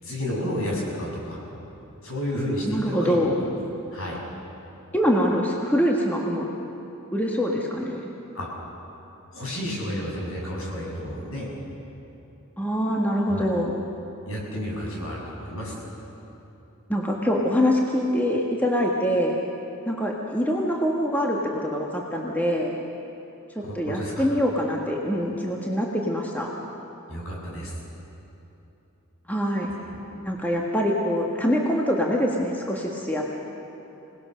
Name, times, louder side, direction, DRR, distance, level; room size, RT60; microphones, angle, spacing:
voice 1, 0.0-1.4 2.0-3.2 3.9-4.2 8.3-8.5 9.3-11.5 13.3-13.5 14.2-15.8 23.6-24.3 27.1-27.8, equal, 65° left, -3 dB, 6.7 m, -31 dB
voice 2, 2.6-3.4 4.9-6.5 7.1-8.1 12.6-13.7 16.9-19.4 19.8-22.8 23.5-26.5 29.3-29.7 30.2-33.3, equal, 10° left, -1 dB, 1.5 m, -24 dB
26.5 x 19.0 x 6.6 m, 3.0 s
head